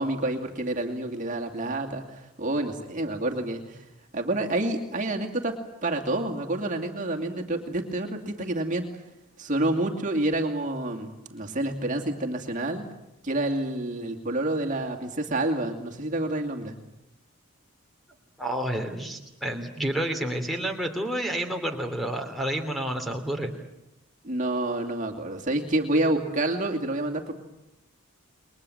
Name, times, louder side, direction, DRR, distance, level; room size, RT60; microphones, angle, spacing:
voice 1, 0.0-3.8 4.1-5.5 5.8-8.9 9.4-12.9 13.2-16.7 24.2-27.3, right 1 dB, 35° right, 2 dB, 2.5 m, -28 dB
voice 2, 18.4-23.5, right 1 dB, ahead, 5 dB, 2.8 m, -29 dB
29.0 x 22.0 x 7.9 m, 0.87 s
head